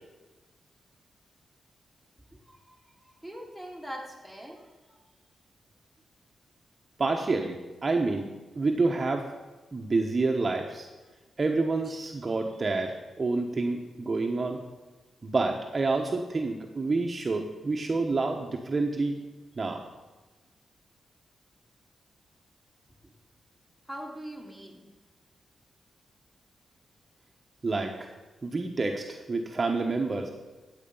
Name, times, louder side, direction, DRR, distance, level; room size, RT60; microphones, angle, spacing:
voice 1, 2.3-2.8 3.0-5.0 23.9-24.9, equal, 5° left, -1 dB, 3.4 m, -42 dB
voice 2, 7.0-9.3 9.7-10.9 11.4-14.6 15.2-19.2 19.6-19.8 27.6-28.1 28.4-30.3, right 3 dB, 35° right, 2 dB, 1.2 m, -28 dB
14.5 x 8.2 x 5.6 m, 1.2 s
cardioid pair, 80°, 0 cm